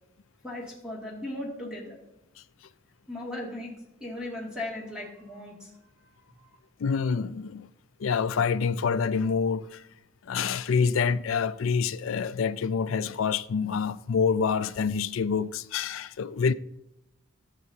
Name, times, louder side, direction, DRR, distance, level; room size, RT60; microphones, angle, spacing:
voice 1, 0.4-2.0 3.1-3.7 4.0-5.8 6.3-6.5, left 1 dB, 5° right, 2.4 m, -37 dB
voice 2, 6.8-7.7 8.0-9.8 10.3-16.5, left 6 dB, 85° left, 0.4 m, -27 dB
15.5 x 7.3 x 2.8 m
head